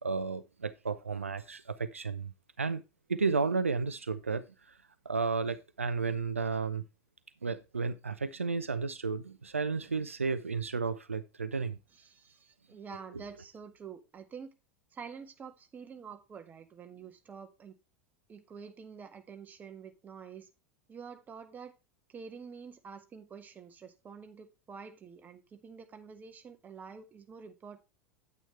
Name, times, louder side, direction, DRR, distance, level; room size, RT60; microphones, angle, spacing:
voice 1, 0.0-2.3 2.6-2.8 3.1-4.4 5.0-6.8 7.4-11.8, right 4 dB, 80° right, 0.7 m, -32 dB
voice 2, 11.9-14.5 14.9-17.7 18.3-20.5 20.9-21.7 22.1-27.8, right 6 dB, 25° right, 1.7 m, -48 dB
9.5 x 9.0 x 3.2 m
figure-of-eight pair, 80°, 7 cm